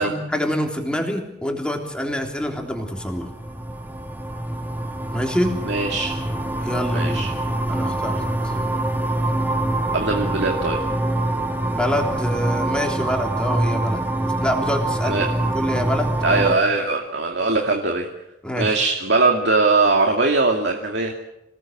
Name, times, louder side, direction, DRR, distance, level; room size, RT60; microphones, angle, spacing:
voice 1, 0.0-3.3 5.1-5.6 6.6-7.3 7.7-8.5 11.7-14.0 14.4-16.5 18.4-18.8, equal, 5° left, 2 dB, 3.4 m, -26 dB
sound 1, 2.2-16.5, right 1 dB, 10° right, 2.0 m, -25 dB
voice 2, 5.7-6.1 6.9-7.3 9.9-10.8 15.0-15.3 16.2-18.1 18.6-21.1, right 3 dB, 65° right, 2 dB, 2.4 m, -20 dB
27.5 x 18.5 x 7.5 m, 0.89 s
head